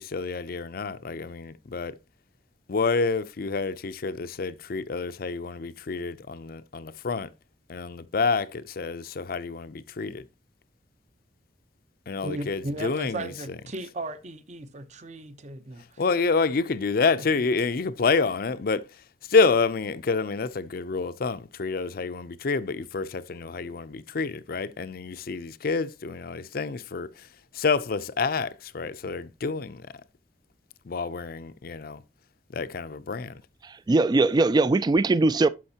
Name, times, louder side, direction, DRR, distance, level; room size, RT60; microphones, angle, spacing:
voice 1, 0.0-2.0 2.7-7.3 7.7-10.2 12.1-13.6 16.0-27.3 27.5-29.9 30.8-32.0 32.5-33.4, left 4 dB, 55° left, 0.5 m, -28 dB
voice 2, 12.2-16.0, right 2 dB, 40° right, 0.8 m, -36 dB
voice 3, 33.6-35.5, right 3 dB, 25° right, 0.3 m, -21 dB
12.0 x 5.2 x 2.8 m
head